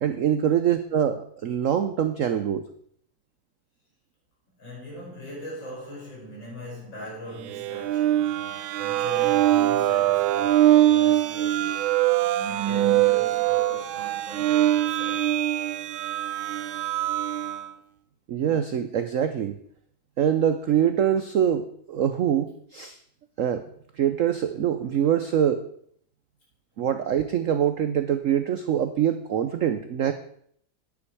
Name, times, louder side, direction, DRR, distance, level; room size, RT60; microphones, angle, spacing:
voice 1, 0.0-2.6 18.3-19.6 20.2-23.0 23.4-23.6 24.0-25.6 26.8-30.1, right 9 dB, 70° right, 0.7 m, -24 dB
voice 2, 4.6-11.9 12.4-15.3, right 1 dB, 75° left, 6.2 m, -41 dB
sound 1, 7.5-17.7, right 13 dB, 90° right, 1.5 m, -23 dB
9.8 x 8.7 x 4.7 m
omnidirectional pair, 2.1 m